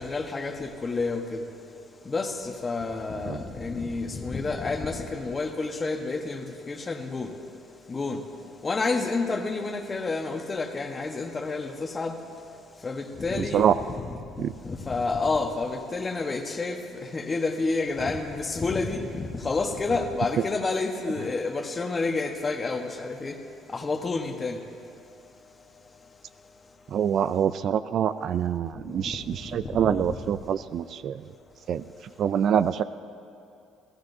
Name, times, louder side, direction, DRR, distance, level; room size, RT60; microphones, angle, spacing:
voice 1, 0.0-1.4 2.0-7.3 7.9-8.2 8.6-12.1 12.8-14.0 14.6-16.8 17.1-23.4 23.7-24.6 29.4-30.1, left 3 dB, 25° left, 4 dB, 1.1 m, -29 dB
voice 2, 26.9-31.2 31.7-31.8 32.2-32.8, right 8 dB, 50° right, 14 dB, 0.3 m, -25 dB
29.5 x 15.5 x 2.7 m, 2.6 s
cardioid pair, 130°, 0 cm